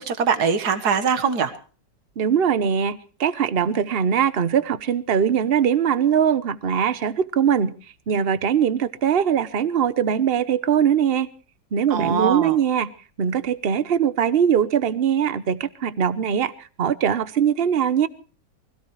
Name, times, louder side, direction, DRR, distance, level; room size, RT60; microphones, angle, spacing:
voice 1, 0.0-1.5 11.9-12.6, right 6 dB, 65° right, 10 dB, 2.0 m, -22 dB
voice 2, 2.2-7.7 8.1-11.3 11.7-12.9 13.2-16.5 16.8-18.1, right 8 dB, 40° right, 14 dB, 1.0 m, -21 dB
24.0 x 17.0 x 3.2 m, 0.38 s
omnidirectional pair, 1.9 m